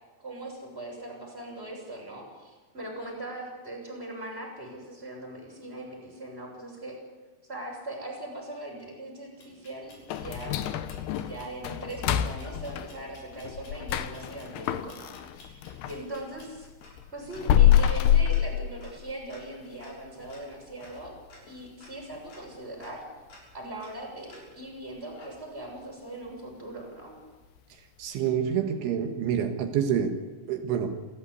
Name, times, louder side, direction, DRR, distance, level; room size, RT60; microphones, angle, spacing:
voice 1, 0.2-7.0 7.5-10.6 11.1-15.5 15.8-16.7 17.1-23.0 23.5-27.2, right 1 dB, 10° right, 6.9 m, -40 dB
sound 1, 9.4-24.8 25.2-25.8, left 2 dB, 45° left, 8.2 m, -55 dB
sound 2, 10.1-16.0 16.4-19.3 19.6-19.7 20.2-20.3 20.8-21.2 21.5-21.6 22.1-22.2, left 10 dB, 75° left, 2.4 m, -26 dB
voice 2, 27.7-31.1, right 8 dB, 75° right, 3.8 m, -28 dB
29.0 x 14.0 x 8.4 m
omnidirectional pair, 5.8 m